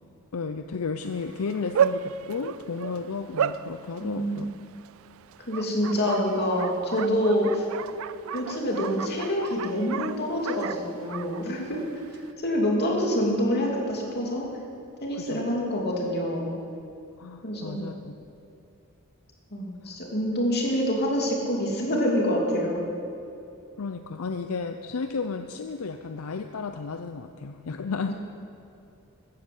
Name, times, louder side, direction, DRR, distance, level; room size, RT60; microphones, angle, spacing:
voice 1, 0.3-4.5 15.1-15.5 17.2-18.1 23.8-28.1, left 4 dB, 80° left, 7 dB, 0.6 m, -33 dB
Bark, 1.0-12.3, right 8 dB, 65° right, 0.4 m, -33 dB
voice 2, 4.0-4.5 5.5-7.7 8.3-11.8 12.1-14.5 15.0-16.5 17.4-17.8 19.5-22.8 28.1-28.2, equal, 50° left, -1 dB, 2.8 m, -26 dB
14.0 x 10.0 x 7.8 m, 2.6 s
head